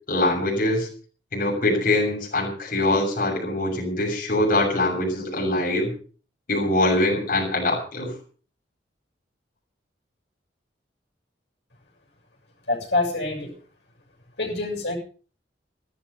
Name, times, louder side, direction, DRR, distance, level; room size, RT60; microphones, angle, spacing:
voice 1, 0.1-0.9 1.3-5.9 6.5-8.1, left 1 dB, 50° left, -2 dB, 6.9 m, -23 dB
voice 2, 12.7-13.6 14.4-15.0, left 2 dB, 75° left, 0 dB, 7.1 m, -26 dB
15.5 x 13.5 x 5.5 m, 0.40 s
head